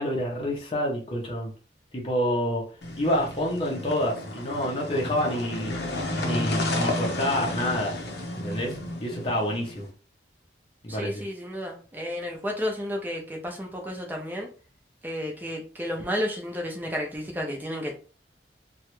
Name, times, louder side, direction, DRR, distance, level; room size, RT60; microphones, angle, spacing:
voice 1, 0.0-1.5 1.9-2.6 3.0-5.7 6.2-7.9 8.4-9.9 10.8-11.2, equal, 30° left, -2 dB, 0.7 m, -28 dB
sound 1, 2.8-9.8, left 1 dB, 70° left, 0.7 m, -31 dB
voice 2, 10.9-14.5 15.0-17.9, equal, 10° right, 0 dB, 0.6 m, -32 dB
3.0 x 2.3 x 3.0 m, 0.38 s
head